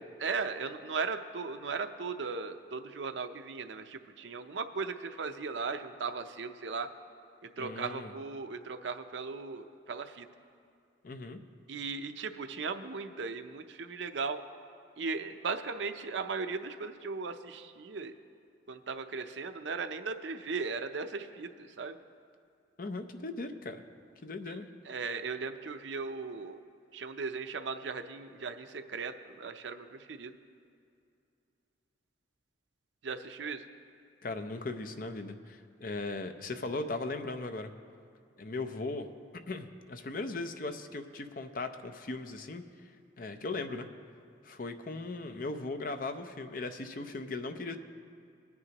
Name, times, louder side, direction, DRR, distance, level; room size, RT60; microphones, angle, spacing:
voice 1, 0.2-6.9 7.6-10.2 11.7-14.4 15.0-18.1 18.7-22.0 24.9-26.6 26.9-29.1 29.4-30.3 33.0-33.6, right 4 dB, 80° right, 8 dB, 0.6 m, -37 dB
voice 2, 7.6-8.1 11.0-11.4 22.8-23.8 24.2-24.7 34.2-37.7 38.4-39.1 39.5-42.6 43.2-43.9 44.4-47.8, left 3 dB, 50° left, 7 dB, 0.6 m, -38 dB
20.0 x 9.5 x 2.9 m, 2.4 s
head